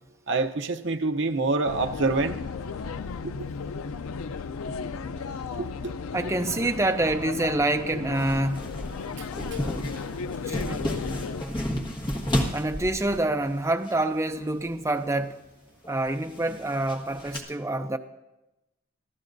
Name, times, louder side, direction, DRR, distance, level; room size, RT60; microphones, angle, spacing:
voice 1, 0.3-2.4 3.2-3.5 5.6-5.9 9.2-9.6, right 3 dB, 60° right, 0.8 m, -27 dB
sound 1, 1.7-11.4, left 5 dB, 85° left, 0.5 m, -35 dB
voice 2, 6.1-8.6 10.4-10.8 12.5-15.4 15.9-18.0, right 2 dB, 15° right, 0.5 m, -26 dB
sound 2, 8.1-14.0 14.3-14.7 15.0-15.1 15.8-17.4, equal, 25° left, 1.5 m, -32 dB
26.5 x 14.0 x 2.7 m
head